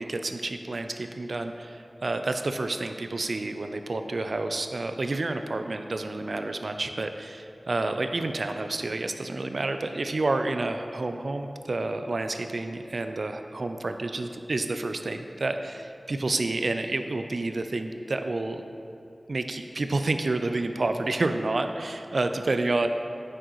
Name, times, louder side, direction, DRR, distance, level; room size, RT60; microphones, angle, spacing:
voice 1, 0.0-18.6 19.3-22.9, right 2 dB, 75° right, 7 dB, 0.4 m, -29 dB
8.8 x 6.2 x 3.1 m, 2.6 s
wide cardioid pair, 50°, 0 cm